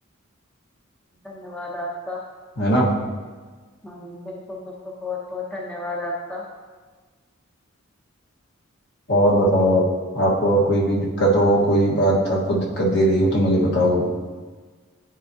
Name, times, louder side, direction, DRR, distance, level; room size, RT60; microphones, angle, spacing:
voice 1, 1.2-2.2 3.8-6.4, left 2 dB, 5° left, -4 dB, 0.7 m, -32 dB
voice 2, 2.6-2.9 9.1-9.8 10.1-14.1, right 1 dB, 55° left, -4 dB, 1.4 m, -19 dB
10.0 x 4.5 x 2.7 m, 1.4 s
head